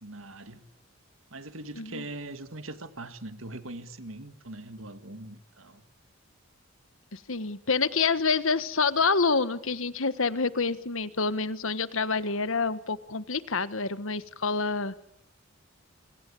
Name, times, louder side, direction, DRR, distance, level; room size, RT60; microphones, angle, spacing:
voice 1, 0.0-0.7 1.3-5.8, right 2 dB, 70° right, 2.1 m, -41 dB
voice 2, 7.1-14.9, left 4 dB, 70° left, 1.4 m, -27 dB
28.0 x 24.5 x 8.5 m
head